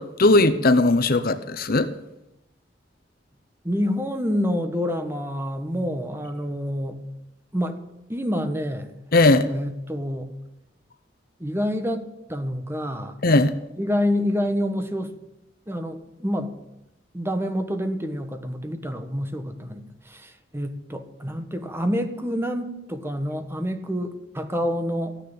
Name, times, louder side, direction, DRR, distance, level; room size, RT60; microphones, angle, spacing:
voice 1, 0.0-1.9 9.1-9.5 13.2-13.5, left 2 dB, 55° left, 12 dB, 0.9 m, -18 dB
voice 2, 3.6-7.0 7.5-7.8 8.1-8.9 9.4-10.3 11.4-13.2 13.8-15.1 15.7-16.5 17.1-25.2, equal, 15° right, 8 dB, 1.4 m, -27 dB
14.5 x 9.9 x 8.9 m, 0.89 s
head